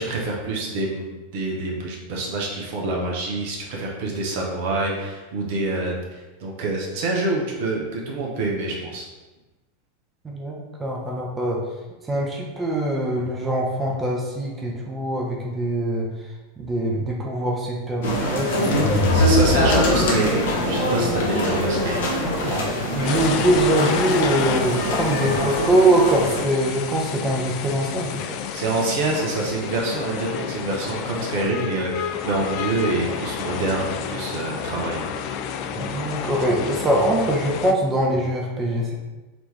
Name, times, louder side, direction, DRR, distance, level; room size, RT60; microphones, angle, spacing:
voice 1, 0.0-9.1 19.1-22.4 28.5-35.3, right 2 dB, 60° right, -1 dB, 0.9 m, -26 dB
voice 2, 10.8-11.6 12.1-16.1 16.6-18.9 22.4-28.4 35.7-38.9, right 1 dB, 20° right, -2 dB, 0.8 m, -23 dB
sound 1, 18.0-26.4, left 1 dB, 65° left, 0.9 m, -23 dB
sound 2, 18.6-20.5, equal, 20° left, 1.0 m, -23 dB
sound 3, 23.0-37.7, left 8 dB, 50° left, 0.3 m, -30 dB
4.3 x 2.8 x 3.3 m, 1.1 s
figure-of-eight pair, 90°, 0 cm